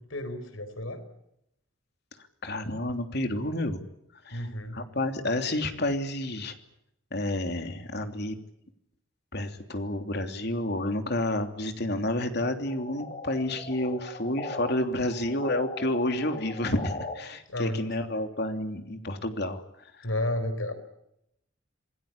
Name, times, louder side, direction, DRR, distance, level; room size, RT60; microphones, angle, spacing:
voice 1, 0.1-1.0 4.3-4.8 17.5-18.2 20.0-20.7, left 1 dB, 80° left, 11 dB, 4.4 m, -32 dB
voice 2, 2.4-3.8 4.2-4.5 4.7-6.5 7.1-8.4 9.3-19.6 19.9-20.1, left 1 dB, 55° left, 6 dB, 3.1 m, -30 dB
sound 1, 12.7-14.7 15.1-17.1, left 2 dB, 30° left, 3.8 m, -39 dB
27.5 x 20.0 x 8.7 m, 0.80 s
head